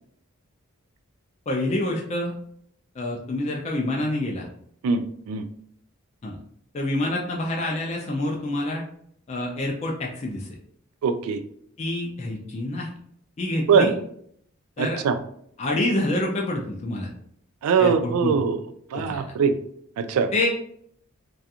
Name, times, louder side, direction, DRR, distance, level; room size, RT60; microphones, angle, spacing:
voice 1, 1.5-2.3 3.0-4.5 6.2-6.4 6.7-8.8 9.3-10.5 11.8-12.9 13.4-13.9 14.8-15.0 15.6-17.1 17.8-18.4 18.9-19.3 20.3-20.5, left 1 dB, 30° left, -1 dB, 0.3 m, -27 dB
voice 2, 4.8-5.4 11.0-11.4 13.7-13.9 14.8-15.2 17.6-18.6 18.9-19.6 20.0-20.5, right 6 dB, 85° right, 13 dB, 0.3 m, -22 dB
2.4 x 2.3 x 2.7 m, 0.66 s
head